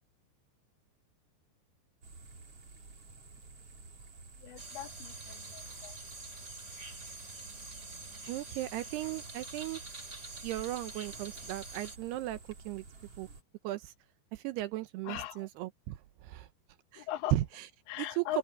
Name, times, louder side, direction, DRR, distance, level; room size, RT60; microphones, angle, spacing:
sound 1, 2.0-13.4, right 3 dB, 35° right, 4.2 m, -53 dB
voice 1, 4.4-6.0 15.1-15.4 17.0-17.3 17.9-18.4, left 14 dB, 90° left, 3.4 m, -39 dB
sound 2, 4.6-12.0, right 2 dB, 20° right, 2.6 m, -46 dB
voice 2, 8.3-9.8 10.4-12.4 12.7-12.8 13.2-13.3 13.6-13.9 14.3-16.5 16.9-17.7 18.0-18.4, right 15 dB, 80° right, 2.6 m, -36 dB
omnidirectional pair, 5.0 m